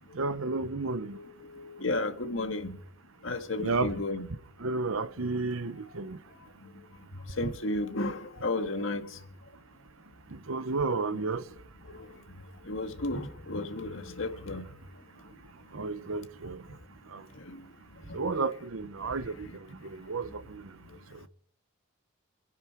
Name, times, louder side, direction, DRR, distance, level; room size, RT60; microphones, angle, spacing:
voice 1, 0.2-1.1 3.6-3.9 4.6-6.2 7.4-7.5 10.5-11.4 15.7-16.6 17.1-17.2 18.1-19.3 20.1-20.6, right 3 dB, 70° right, 0.8 m, -31 dB
voice 2, 1.1-2.8 3.2-4.3 7.4-9.1 12.7-14.7, left 2 dB, 65° left, 1.7 m, -33 dB
27.5 x 10.5 x 4.6 m
head